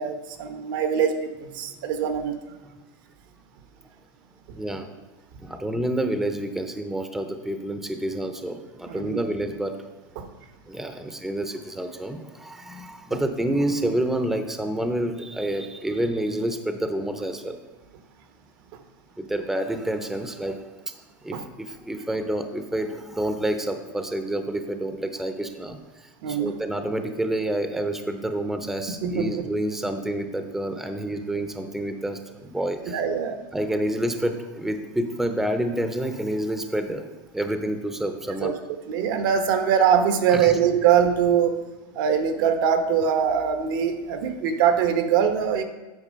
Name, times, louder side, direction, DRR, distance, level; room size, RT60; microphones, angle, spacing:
voice 1, 0.0-2.3 8.9-9.2 10.2-10.3 21.3-21.4 26.2-26.5 29.0-29.4 32.9-33.4 38.4-38.5 38.9-41.6 41.9-45.6, right 8 dB, 70° right, 7 dB, 1.0 m, -22 dB
voice 2, 4.5-4.9 5.4-9.7 10.7-17.6 19.2-20.6 21.2-25.8 26.3-33.0 33.5-37.1 37.3-38.5 40.3-40.6, right 1 dB, 5° right, 7 dB, 0.7 m, -28 dB
8.5 x 4.8 x 5.2 m, 1.1 s
supercardioid pair, 120°, 12 cm